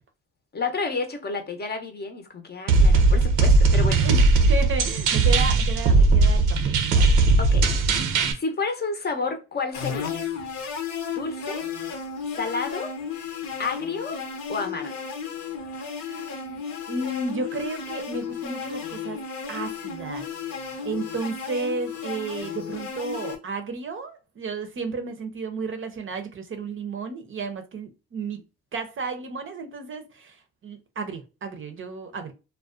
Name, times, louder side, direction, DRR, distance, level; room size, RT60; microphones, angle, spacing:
voice 1, 0.5-4.0 7.4-7.6 8.3-10.2 11.1-11.6 12.4-12.9 13.6-14.2 14.5-14.9, left 4 dB, 35° left, 0.7 m, -30 dB
sound 1, 2.7-8.3, right 3 dB, 80° right, 0.6 m, -18 dB
voice 2, 4.5-7.1 16.0-16.6 16.9-19.2 19.5-20.3 20.8-28.4 28.7-30.4 30.6-32.3, right 3 dB, 40° right, 0.6 m, -32 dB
sound 2, 9.7-23.4, left 6 dB, 70° left, 0.8 m, -34 dB
2.4 x 2.2 x 2.4 m
cardioid pair, 85°, 31 cm